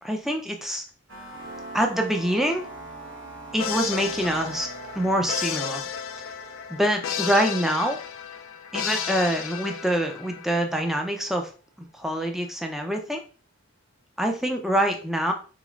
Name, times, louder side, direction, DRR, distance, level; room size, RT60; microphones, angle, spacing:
voice 1, 0.0-0.8 1.7-2.6 3.5-4.7 4.9-5.8 6.7-8.0 8.7-11.5 11.8-13.2 14.2-15.3, equal, ahead, 3 dB, 0.4 m, -25 dB
sound 1, 1.1-9.7, right 2 dB, 75° right, 1.2 m, -43 dB
sound 2, 3.6-10.5, left 8 dB, 75° left, 0.4 m, -33 dB
4.1 x 3.0 x 2.4 m, 0.37 s
head